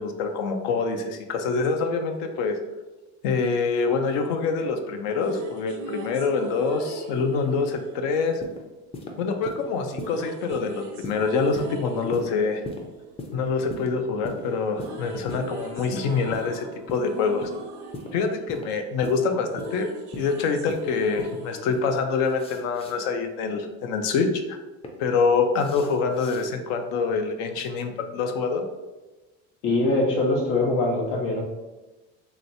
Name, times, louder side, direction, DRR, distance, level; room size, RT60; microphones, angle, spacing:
voice 1, 0.0-2.6 3.2-8.4 9.2-12.6 13.3-17.5 18.1-19.9 20.2-24.6 25.0-28.6, left 4 dB, 70° left, 6 dB, 0.5 m, -25 dB
sound 1, 4.9-9.1 9.9-14.2 14.4-22.9, right 1 dB, 80° right, 0.7 m, -40 dB
sound 2, 8.3-8.6 8.9-9.1 9.5-9.6 10.0-10.1 10.5-10.7 11.0-11.2 11.5-11.7 12.1-12.3 12.6-12.8 13.2-13.3 13.7-13.9 14.2-14.4 14.8-15.0 15.3-15.5 15.8-15.9 16.3-16.5 16.9-17.1 17.4-17.6 17.9-18.1 18.5-18.7 19.0-19.2 19.6-19.7 20.1-20.3 20.7-20.8 21.2-21.4 21.7-21.9 22.2-22.9 24.4-24.9 25.5-26.5, left 2 dB, 15° left, 0.5 m, -38 dB
voice 2, 29.6-31.4, left 2 dB, 85° left, -2 dB, 1.1 m, -23 dB
3.2 x 2.9 x 2.6 m, 1.1 s
supercardioid pair, 100°, 35 cm